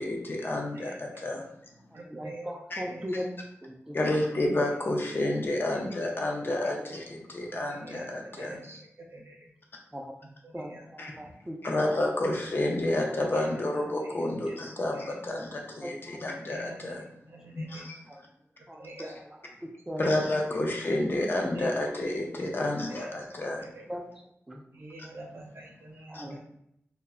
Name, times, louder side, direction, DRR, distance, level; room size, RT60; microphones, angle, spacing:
voice 1, 0.0-1.4 2.7-2.8 3.9-8.5 11.0-11.1 11.6-17.0 17.6-18.0 20.0-23.7 26.1-26.2, left 1 dB, 45° left, 0 dB, 0.5 m, -30 dB
voice 2, 0.7-1.3 1.9-2.5 2.8-3.2 5.1-5.2 5.8-6.2 7.5-9.5 10.4-10.9 11.2-11.3 13.3-14.6 14.9-15.0 16.3-17.9 18.5-19.2 21.5-21.8 23.0-23.1 23.6-23.9 24.7-26.4, right 2 dB, 55° right, -2 dB, 0.7 m, -47 dB
voice 3, 1.9-4.0 6.5-6.9 7.4-7.5 7.9-8.0 9.9-12.1 14.6-15.1 15.8-16.2 18.1-18.4 18.7-20.3 23.2-23.3 23.9-24.6 26.1-26.4, equal, 10° right, 1 dB, 0.4 m, -40 dB
2.1 x 2.0 x 3.5 m, 0.75 s
wide cardioid pair, 95°, 5 cm